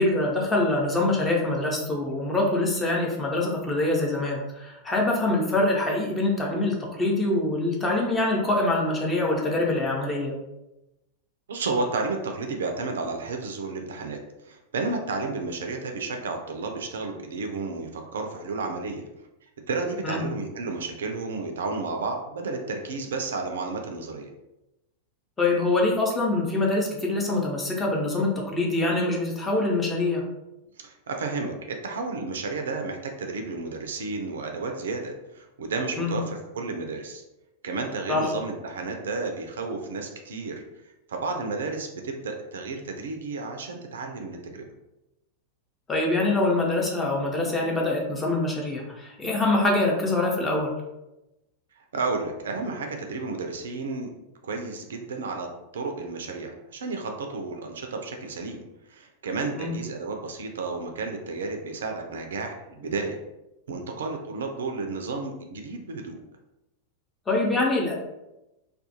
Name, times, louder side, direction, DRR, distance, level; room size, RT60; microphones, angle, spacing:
voice 1, 0.0-10.3 20.0-20.2 25.4-30.2 36.0-36.2 38.1-38.3 45.9-50.7 59.5-59.7 67.3-68.0, left 2 dB, 15° left, -1 dB, 0.7 m, -24 dB
voice 2, 11.5-19.0 19.4-24.3 30.8-37.2 37.6-40.6 41.1-44.6 51.7-54.1 54.4-55.5 55.7-63.2 63.7-66.2, right 3 dB, 65° right, 3 dB, 0.3 m, -32 dB
2.3 x 2.2 x 2.7 m, 0.93 s
figure-of-eight pair, 90°, 0 cm